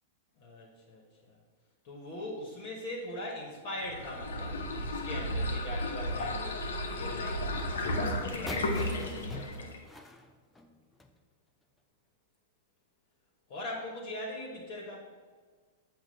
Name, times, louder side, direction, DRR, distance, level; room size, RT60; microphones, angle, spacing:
voice 1, 0.4-1.4 1.8-4.6 4.9-9.8 13.5-15.0, left 1 dB, 50° left, -3 dB, 1.2 m, -41 dB
sound 1, 3.8-9.9, left 1 dB, 70° left, 0.8 m, -33 dB
sound 2, 8.5-11.2, left 2 dB, 10° left, 0.5 m, -44 dB
7.3 x 2.5 x 5.3 m, 1.5 s
figure-of-eight pair, 100°, 0 cm